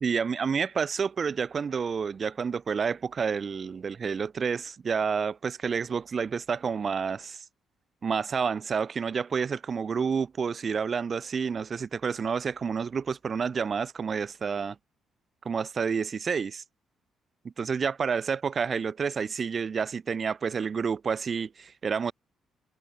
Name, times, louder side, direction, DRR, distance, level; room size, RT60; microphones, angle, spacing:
voice 1, 0.0-7.4 8.0-14.8 15.4-16.6 17.4-22.1, right 6 dB, 45° right, 0.7 m, -29 dB
cardioid pair, 90°, 0 cm